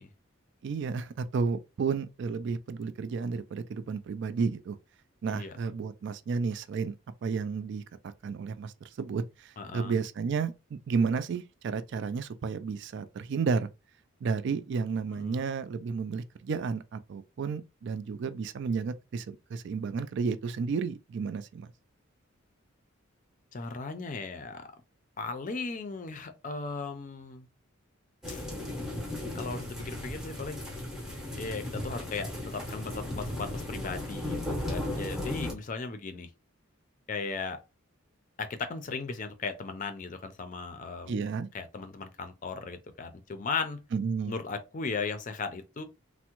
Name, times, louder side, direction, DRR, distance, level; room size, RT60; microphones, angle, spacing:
voice 1, 0.6-4.8 5.2-6.9 7.2-7.8 8.2-13.7 14.2-21.7 41.1-41.5 43.9-44.3, right 5 dB, 55° right, 0.3 m, -32 dB
voice 2, 9.6-10.0 15.1-15.5 23.5-24.6 25.2-27.5 28.3-28.5 29.3-30.6 31.4-36.3 37.1-37.6 38.4-41.2 41.5-43.8 44.2-45.8, left 4 dB, 40° left, 0.4 m, -37 dB
sound 1, 28.2-35.5, left 1 dB, 5° right, 0.7 m, -36 dB
3.4 x 2.1 x 2.9 m
head